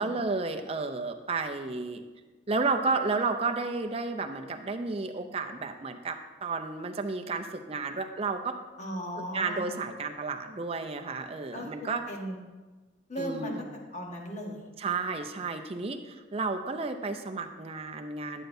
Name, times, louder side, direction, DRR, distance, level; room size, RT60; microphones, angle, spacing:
voice 1, 0.0-2.0 2.5-8.6 9.2-12.0 13.2-13.6 14.8-18.4, right 4 dB, 30° right, 6 dB, 0.5 m, -32 dB
voice 2, 8.8-9.7 11.5-12.4 13.1-13.6 13.9-14.7, equal, 35° left, 0 dB, 1.2 m, -37 dB
10.5 x 7.8 x 2.7 m, 1.3 s
head